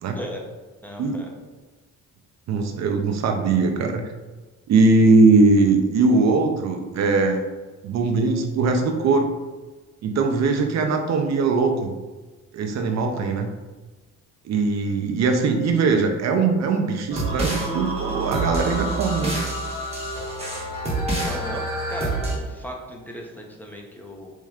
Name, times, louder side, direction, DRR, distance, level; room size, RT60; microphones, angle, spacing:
voice 1, 0.8-1.3 21.2-24.3, equal, 5° left, -1 dB, 0.6 m, -36 dB
voice 2, 2.5-4.0 4.7-7.4 7.8-9.3 10.0-11.9 12.5-13.5 14.4-19.4, right 3 dB, 60° right, 4 dB, 0.6 m, -20 dB
sound 1, 17.1-22.3, right 2 dB, 20° right, 1.2 m, -27 dB
4.3 x 3.1 x 2.4 m, 1.2 s
cardioid pair, 90°, 30 cm